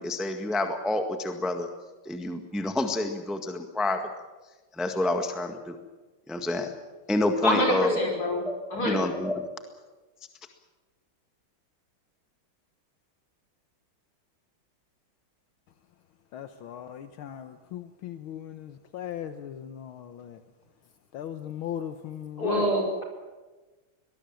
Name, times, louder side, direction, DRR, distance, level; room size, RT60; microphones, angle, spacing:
voice 1, 0.0-1.7 2.0-4.1 4.8-5.8 6.3-6.7 7.1-8.1 8.5-9.4, left 2 dB, ahead, 5 dB, 1.4 m, -28 dB
voice 2, 7.4-8.4 8.7-9.0 22.4-23.0, equal, 45° left, 1 dB, 5.4 m, -26 dB
voice 3, 16.3-20.4 21.1-22.7, left 9 dB, 75° left, 9 dB, 1.8 m, -38 dB
23.5 x 20.0 x 7.7 m, 1.2 s
omnidirectional pair, 2.3 m